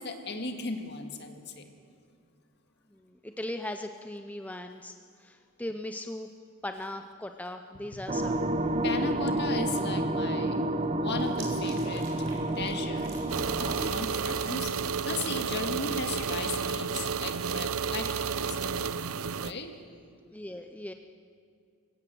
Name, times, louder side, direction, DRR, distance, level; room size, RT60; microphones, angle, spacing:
voice 1, 0.0-1.7 8.8-10.6 10.9-12.1 12.6-13.1 13.6-14.7 15.1-18.5 19.4-19.7, left 3 dB, 50° left, 5 dB, 2.0 m, -36 dB
voice 2, 2.9-6.3 6.6-8.4 20.3-20.9, left 1 dB, 5° left, 6 dB, 0.6 m, -39 dB
sound 1, 8.1-13.9, right 1 dB, 30° right, 0.8 m, -29 dB
sound 2, 11.1-15.2 15.5-16.6, right 4 dB, 65° right, 5.4 m, -49 dB
sound 3, 13.3-19.5, right 6 dB, 90° right, 0.7 m, -31 dB
23.5 x 17.0 x 7.8 m, 2.3 s
head